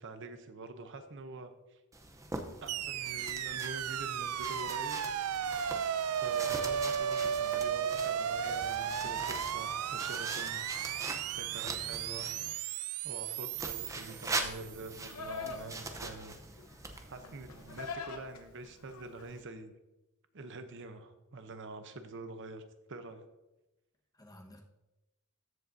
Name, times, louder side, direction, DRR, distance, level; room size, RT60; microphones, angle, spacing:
voice 1, 0.0-1.8 2.6-5.0 6.2-10.6 11.4-12.3 13.0-16.4 17.0-19.7 20.3-22.6 22.9-23.2, right 2 dB, 55° right, 8 dB, 0.8 m, -46 dB
sound 1, 1.9-12.5 13.5-17.9, right 2 dB, 15° right, 0.7 m, -43 dB
sound 2, 2.7-14.9, right 8 dB, 80° right, 0.4 m, -35 dB
voice 2, 10.9-11.3 15.4-15.7 24.1-24.6, equal, 15° left, 1 dB, 1.3 m, -55 dB
Livestock farm animals working animals, 14.3-19.4, left 4 dB, 70° left, 1.0 m, -45 dB
13.5 x 7.6 x 2.7 m, 0.97 s
head